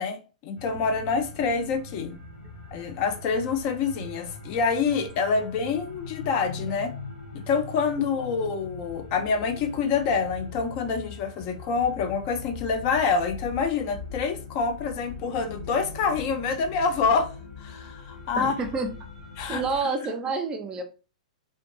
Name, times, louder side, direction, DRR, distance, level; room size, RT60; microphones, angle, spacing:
voice 1, 0.0-2.2 2.7-6.9 7.3-17.3 17.6-18.5 19.4-19.6, left 5 dB, 40° left, 0.4 m, -26 dB
sound 1, 0.6-19.8, left 4 dB, 65° left, 0.8 m, -41 dB
voice 2, 18.4-18.9 19.5-20.8, right 4 dB, 20° right, 0.4 m, -28 dB
2.5 x 2.2 x 2.6 m
figure-of-eight pair, 110°, 4 cm